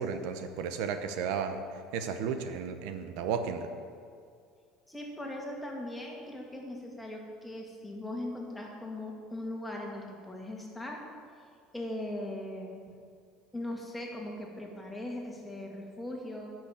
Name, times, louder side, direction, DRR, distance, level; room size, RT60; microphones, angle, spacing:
voice 1, 0.0-3.7, right 6 dB, 75° right, 8 dB, 0.9 m, -34 dB
voice 2, 4.9-11.1 11.7-12.8 13.5-16.5, left 1 dB, 10° left, -1 dB, 2.2 m, -39 dB
10.5 x 6.3 x 8.7 m, 2.2 s
cardioid pair, 125°, 0 cm